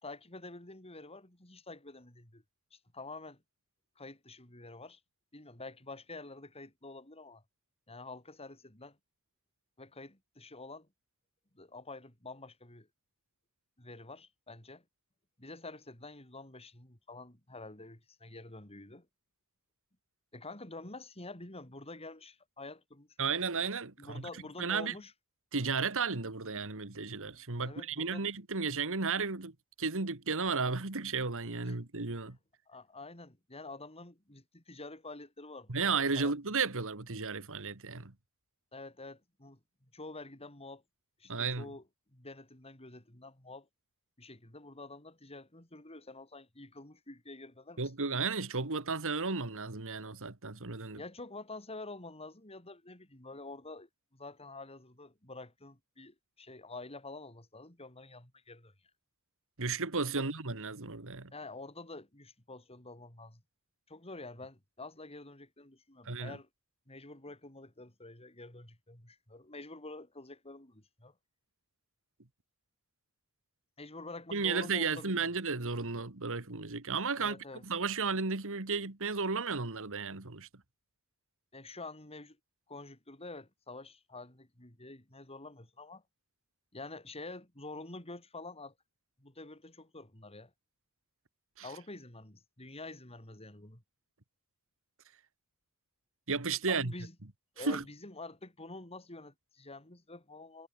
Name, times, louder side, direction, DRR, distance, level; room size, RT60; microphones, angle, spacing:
voice 1, 0.0-2.4 2.7-3.4 4.0-5.0 5.3-7.4 7.9-9.0 9.8-10.9 11.5-12.9 13.8-14.8 15.4-19.1 20.3-23.1 24.0-25.1 27.6-28.3 31.7-31.8 32.7-36.3 38.7-40.8 41.2-41.9 42.1-43.7 44.2-47.8 51.0-58.7 60.2-60.3 61.3-63.4 63.9-66.5 66.9-71.1 73.8-75.3 77.2-77.6 81.5-82.4 82.7-86.0 86.7-88.7 89.2-90.5 91.6-93.8 96.7-97.1 97.6-100.7, left 2 dB, 25° left, 4.7 m, -48 dB
voice 2, 23.2-24.3 24.6-24.9 25.5-29.5 29.8-32.4 35.7-38.1 41.3-41.7 47.8-51.0 59.6-61.3 66.1-66.4 74.3-77.4 77.6-80.5 91.6-91.7 96.3-96.9 97.6-97.8, right 4 dB, 65° right, 2.0 m, -33 dB
head